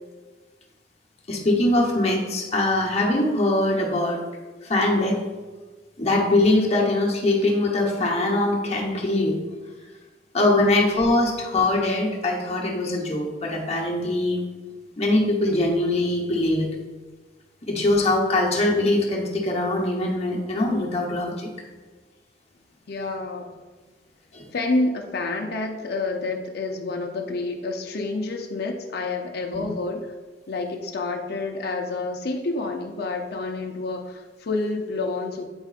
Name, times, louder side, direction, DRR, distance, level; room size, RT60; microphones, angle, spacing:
voice 1, 1.3-4.2 4.6-5.2 6.0-9.4 10.3-14.4 15.0-16.7 17.7-21.5 24.3-24.4 29.5-29.6, left 2 dB, 35° left, -1 dB, 1.0 m, -22 dB
voice 2, 10.6-10.9 22.9-23.5 24.5-30.1 30.5-35.5, left 3 dB, 60° left, 2 dB, 0.6 m, -28 dB
7.9 x 5.1 x 2.4 m, 1.3 s
head